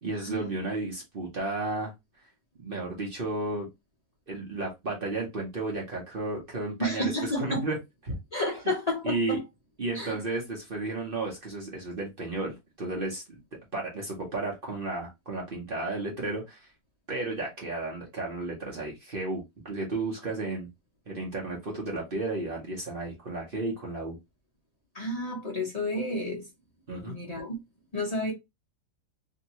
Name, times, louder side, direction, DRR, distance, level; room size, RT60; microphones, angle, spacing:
voice 1, 0.0-1.9 2.6-3.7 4.3-7.8 8.0-8.2 9.0-9.4 9.8-13.4 13.7-16.7 17.1-20.7 21.1-24.2 26.9-27.1, right 2 dB, 45° right, 0.8 m, -33 dB
voice 2, 6.8-7.6 8.3-9.4 9.9-10.2 24.9-26.4 27.0-27.6 27.9-28.3, left 1 dB, 40° left, 0.6 m, -30 dB
2.9 x 2.7 x 2.8 m
omnidirectional pair, 1.9 m